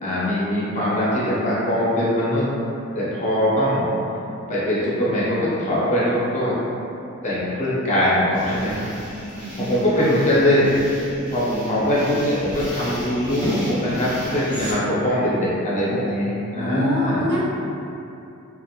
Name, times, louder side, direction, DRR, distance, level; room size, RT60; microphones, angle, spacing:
voice 1, 0.0-2.5 2.9-3.8 4.5-6.6 7.2-8.9 9.5-10.8 11.3-17.3, left 1 dB, 35° left, -9 dB, 0.6 m, -22 dB
sound 1, 8.3-14.7, equal, 10° right, 1.2 m, -33 dB
voice 2, 9.4-9.7 10.0-10.1 16.5-17.4, equal, 55° right, -7 dB, 0.6 m, -24 dB
2.8 x 2.1 x 2.4 m, 2.8 s
head